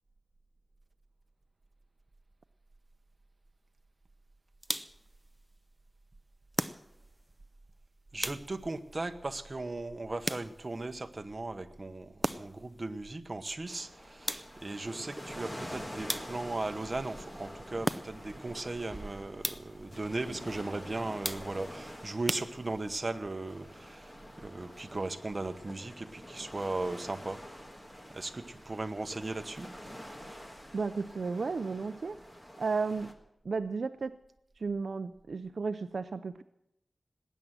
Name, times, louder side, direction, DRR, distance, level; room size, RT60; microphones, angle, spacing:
sound 1, 4.6-5.1 6.5-7.2 8.2-8.8 10.2-10.8 12.2-12.7 14.3-14.8 16.1-16.7 17.8-18.4 19.4-19.9 21.2-21.8 22.3-23.0, equal, 5° right, 0.6 m, -37 dB
voice 1, 8.1-24.1 24.4-27.6 28.1-29.7, right 2 dB, 35° right, 8 dB, 1.0 m, -37 dB
sound 2, 13.7-33.1, equal, 10° left, 1.6 m, -47 dB
voice 2, 30.7-32.2 32.6-33.1 33.4-34.2 34.6-36.4, right 4 dB, 65° right, 10 dB, 0.5 m, -33 dB
19.5 x 9.2 x 7.5 m, 0.82 s
wide cardioid pair, 110°, 0 cm